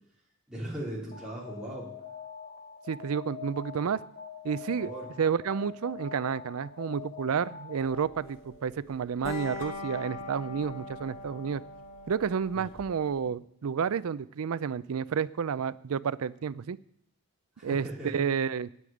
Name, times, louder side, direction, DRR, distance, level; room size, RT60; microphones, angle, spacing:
voice 1, 0.5-1.9 4.8-5.1 12.5-12.7 17.6-18.1, right 1 dB, 5° right, -7 dB, 3.8 m, -38 dB
Alarm, 1.1-8.2, left 8 dB, 45° left, 1.7 m, -44 dB
voice 2, 2.9-4.0 4.4-4.9 5.2-11.6 12.1-16.8 17.6-18.7, right 6 dB, 80° right, 18 dB, 0.4 m, -30 dB
sound 1, 7.8-13.3, left 3 dB, 70° left, 1.7 m, -42 dB
9.4 x 8.3 x 8.6 m, 0.72 s
head